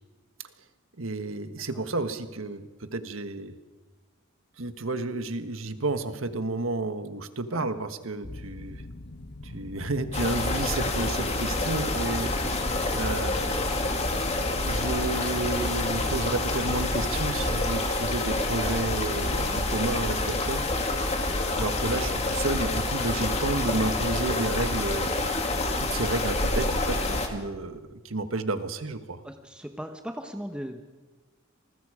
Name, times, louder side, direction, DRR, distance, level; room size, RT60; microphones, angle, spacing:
voice 1, 1.0-3.5 4.6-8.8 9.4-12.5 12.9-13.6 14.7-21.0 21.5-25.1 25.8-29.2, right 2 dB, 85° right, 9 dB, 1.5 m, -31 dB
sound 1, 8.2-17.3, left 2 dB, 55° left, 1.0 m, -42 dB
sound 2, 10.1-27.3, left 2 dB, 30° left, 2.3 m, -27 dB
voice 2, 29.2-30.8, equal, 5° right, 5 dB, 1.1 m, -37 dB
27.5 x 20.5 x 5.0 m, 1.3 s
head